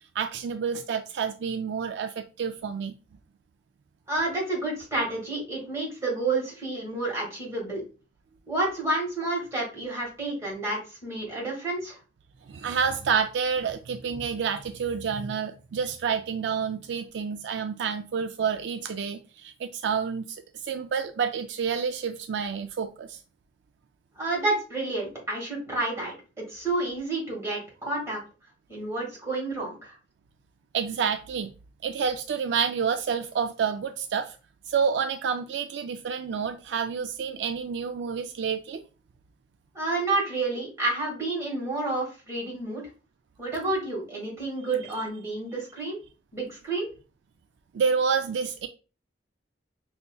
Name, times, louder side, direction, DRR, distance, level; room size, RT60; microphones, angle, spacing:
voice 1, 0.1-2.9 12.5-23.2 30.7-31.5 31.8-34.4 34.7-38.8 47.7-48.7, right 6 dB, 70° right, 0.3 m, -29 dB
voice 2, 4.1-7.8 8.5-12.0 24.2-28.2 28.7-30.0 39.7-42.9 43.4-46.0 46.3-46.9, right 2 dB, 15° right, 1.8 m, -30 dB
5.4 x 2.8 x 2.2 m
head